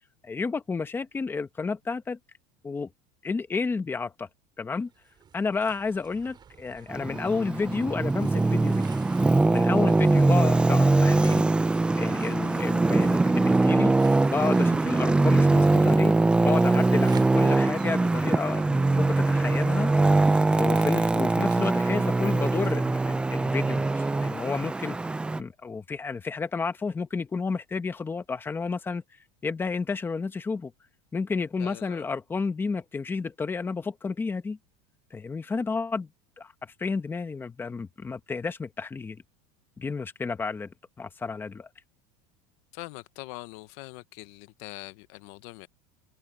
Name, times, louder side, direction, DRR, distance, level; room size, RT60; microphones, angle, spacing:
voice 1, 0.2-2.2 2.6-2.9 3.2-4.3 4.6-4.9 5.3-8.9 9.5-11.5 11.9-14.0 14.3-19.9 20.6-25.0 25.4-29.0 29.4-30.7 31.1-34.6 35.1-36.1 36.4-36.5 36.8-39.2 39.8-40.7 41.0-41.7, left 4 dB, 10° left, 1.0 m, -31 dB
sound 1, 4.8-22.7, right 7 dB, 20° right, 7.0 m, -50 dB
Traffic noise roadway noise, 6.9-25.4, right 2 dB, 5° right, 0.4 m, -22 dB
voice 2, 31.6-32.0 42.7-45.7, left 21 dB, 55° left, 0.7 m, -43 dB
cardioid pair, 170°, 20 cm